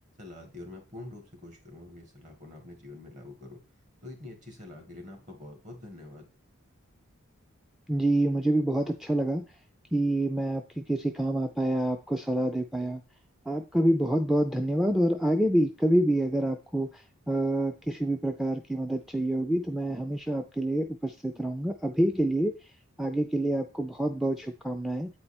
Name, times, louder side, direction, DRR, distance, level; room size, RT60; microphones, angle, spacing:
voice 1, 0.2-3.6 4.0-6.3, left 2 dB, 35° right, 3 dB, 1.8 m, -45 dB
voice 2, 7.9-9.4 9.9-13.0 13.5-22.5 23.0-25.1, right 1 dB, ahead, 5 dB, 0.3 m, -27 dB
8.6 x 4.4 x 4.3 m, 0.33 s
head